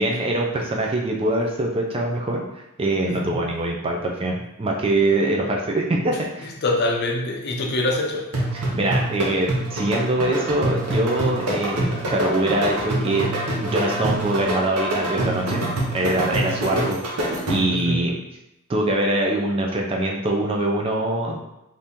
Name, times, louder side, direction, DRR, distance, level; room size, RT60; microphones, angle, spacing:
voice 1, 0.0-2.5 2.8-6.5 8.5-13.3 13.6-15.6 15.9-17.0 17.5-18.2 18.7-21.4, right 1 dB, 25° right, 0 dB, 0.4 m, -23 dB
voice 2, 6.6-8.3 16.7-16.9 17.7-18.1, left 2 dB, 50° left, 0 dB, 0.5 m, -24 dB
sound 1, 8.3-17.9, right 1 dB, 85° right, 0.9 m, -26 dB
2.8 x 2.6 x 3.5 m, 0.87 s
head